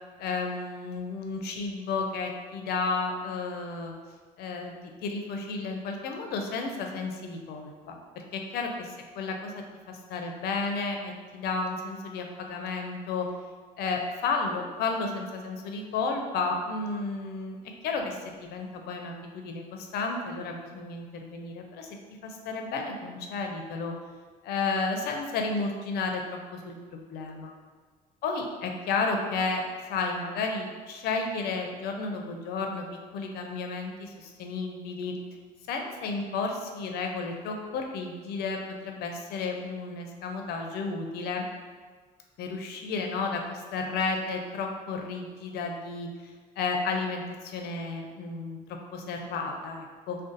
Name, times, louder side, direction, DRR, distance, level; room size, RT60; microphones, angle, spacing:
voice 1, 0.2-3.9 4.4-13.3 13.8-17.6 17.8-21.9 22.2-23.9 24.4-27.5 28.2-29.6 29.9-32.9 33.1-35.2 35.7-41.4 42.4-50.2, left 4 dB, 70° left, 3 dB, 0.5 m, -32 dB
2.5 x 2.2 x 3.8 m, 1.5 s
cardioid pair, 110°, 17 cm